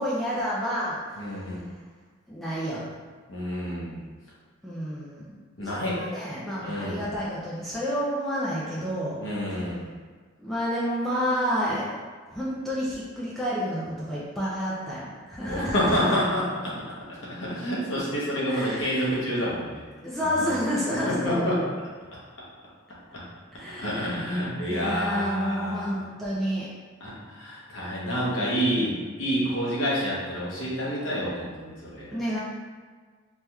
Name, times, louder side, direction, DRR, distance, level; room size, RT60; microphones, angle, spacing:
voice 1, 0.0-1.2 2.3-2.8 4.6-5.3 5.6-9.2 10.4-12.0 12.3-16.1 18.5-19.1 20.0-21.5 23.5-24.4 24.7-26.7 32.1-32.4, equal, ahead, -8 dB, 0.4 m, -29 dB
voice 2, 1.2-1.6 3.3-4.0 5.6-6.0 6.6-7.1 9.2-9.8 15.4-16.7 17.3-19.8 20.2-20.5 21.1-21.6 23.8-26.0 27.0-32.1, equal, 60° left, -6 dB, 0.9 m, -28 dB
3.3 x 2.8 x 2.2 m, 1.5 s
head